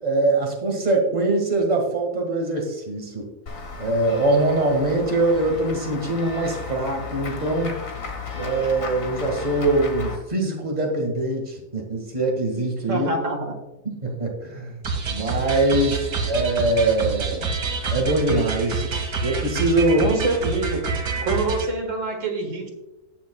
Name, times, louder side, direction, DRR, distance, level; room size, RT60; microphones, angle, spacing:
voice 1, 0.0-3.3 3.8-7.7 8.3-13.1 13.9-14.8 15.1-17.5 17.9-18.9 19.2-20.0, right 2 dB, 25° right, 1 dB, 1.9 m, -23 dB
Run / Walk footsteps / Bell, 3.5-10.2, left 5 dB, 60° left, 1.9 m, -34 dB
voice 2, 12.9-13.6 16.0-16.1 19.9-20.9 21.2-22.7, right 2 dB, 55° right, 3 dB, 2.0 m, -26 dB
sound 1, 14.8-21.7, right 4 dB, 85° right, 2.0 m, -27 dB
18.0 x 7.1 x 2.3 m, 0.97 s
omnidirectional pair, 1.6 m